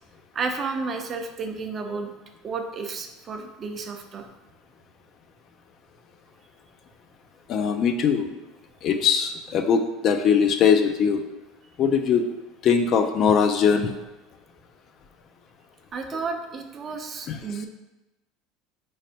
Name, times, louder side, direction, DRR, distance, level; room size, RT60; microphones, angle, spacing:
voice 1, 0.3-2.1 2.4-4.3 15.9-17.7, right 4 dB, 35° right, 5 dB, 0.5 m, -32 dB
voice 2, 7.5-8.4 8.8-11.2 11.8-12.3 12.6-13.9 17.3-17.4, left 6 dB, 45° left, 6 dB, 0.3 m, -21 dB
4.1 x 3.2 x 2.8 m, 1.0 s
supercardioid pair, 105°, 0 cm